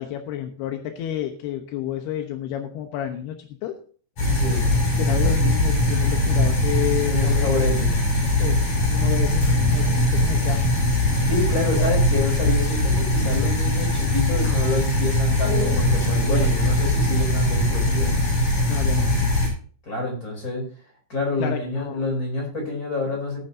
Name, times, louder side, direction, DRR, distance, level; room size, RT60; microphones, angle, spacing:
voice 1, 0.0-3.7 5.0-7.5 8.4-8.6 8.9-10.7 11.6-11.9 16.3-16.6 18.7-19.1 21.4-22.0, left 11 dB, 75° left, 5 dB, 2.5 m, -30 dB
sound 1, 4.2-19.5, left 1 dB, 40° left, 7.8 m, -21 dB
voice 2, 4.3-4.7 7.1-7.9 11.3-18.1 19.8-20.6 21.1-23.4, left 2 dB, 20° left, 1 dB, 3.3 m, -27 dB
17.5 x 9.0 x 2.8 m, 0.42 s
omnidirectional pair, 5.9 m